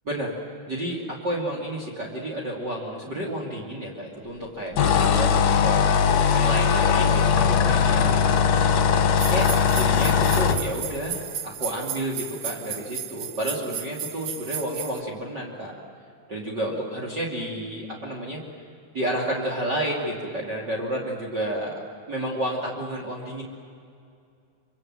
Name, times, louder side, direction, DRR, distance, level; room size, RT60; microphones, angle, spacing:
voice 1, 0.0-0.4 0.7-5.9 6.3-8.2 8.9-9.5 9.7-15.7 16.3-18.4 18.9-21.7 22.1-23.4, right 1 dB, 35° right, -2 dB, 3.3 m, -30 dB
sound 1, 4.8-10.6, left 7 dB, 65° left, 2.4 m, -20 dB
sound 2, 9.2-15.0, right 9 dB, 60° right, 1.8 m, -34 dB
26.0 x 26.0 x 7.7 m, 2.4 s
omnidirectional pair, 3.5 m